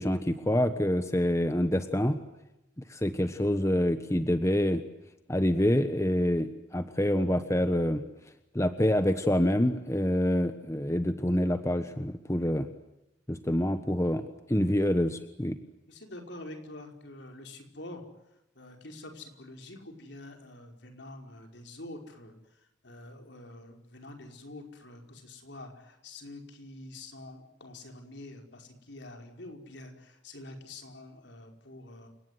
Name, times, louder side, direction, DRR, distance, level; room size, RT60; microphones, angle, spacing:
voice 1, 0.0-2.2 2.9-4.8 5.3-8.0 8.5-12.7 13.3-15.6, equal, 15° left, 9 dB, 1.2 m, -26 dB
voice 2, 15.9-18.0 18.6-22.4 22.8-32.1, left 2 dB, 65° left, 4 dB, 5.1 m, -46 dB
29.5 x 18.5 x 9.4 m, 0.92 s
head